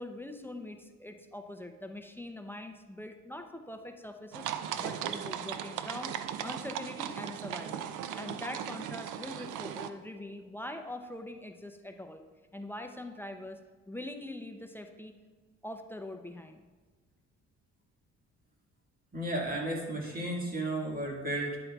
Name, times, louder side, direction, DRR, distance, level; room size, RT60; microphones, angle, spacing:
voice 1, 0.0-4.5 4.8-6.1 6.4-7.9 8.2-12.2 12.5-13.6 13.9-15.1 15.6-16.6, left 1 dB, 5° left, 5 dB, 0.5 m, -43 dB
sound 1, 4.3-9.9, right 9 dB, 80° right, 0.5 m, -37 dB
voice 2, 19.1-21.6, right 1 dB, 30° right, -1 dB, 1.8 m, -33 dB
10.0 x 7.7 x 2.3 m, 1.3 s
cardioid pair, 90°, 30 cm